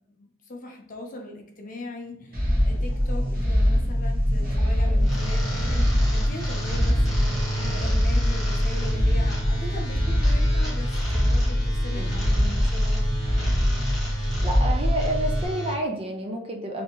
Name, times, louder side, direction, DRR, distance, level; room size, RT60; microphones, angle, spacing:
voice 1, 0.1-13.0, left 2 dB, 40° left, 2 dB, 0.7 m, -40 dB
sound 1, 2.1-9.7, right 1 dB, 80° right, 0.9 m, -42 dB
sound 2, 2.3-15.5, equal, 45° right, 1.0 m, -23 dB
sound 3, 5.0-15.7, right 1 dB, ahead, 1.4 m, -32 dB
voice 2, 14.4-16.8, right 1 dB, 30° right, 2 dB, 0.5 m, -29 dB
3.4 x 2.8 x 2.9 m, 0.72 s
head